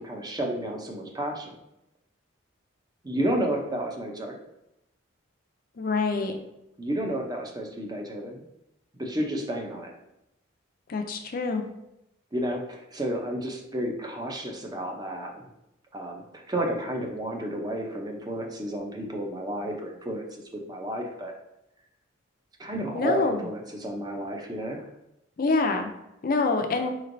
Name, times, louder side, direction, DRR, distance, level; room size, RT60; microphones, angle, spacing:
voice 1, 0.0-1.5 3.0-4.4 6.8-8.4 8.9-9.9 12.3-15.5 15.9-20.2 20.5-21.3 22.6-24.8 26.7-26.9, right 1 dB, 20° right, 1 dB, 0.5 m, -31 dB
voice 2, 5.8-6.4 10.9-11.7 22.9-23.4 25.4-25.9 26.2-26.9, left 3 dB, 45° left, 5 dB, 0.4 m, -25 dB
5.0 x 3.1 x 2.6 m, 0.87 s
head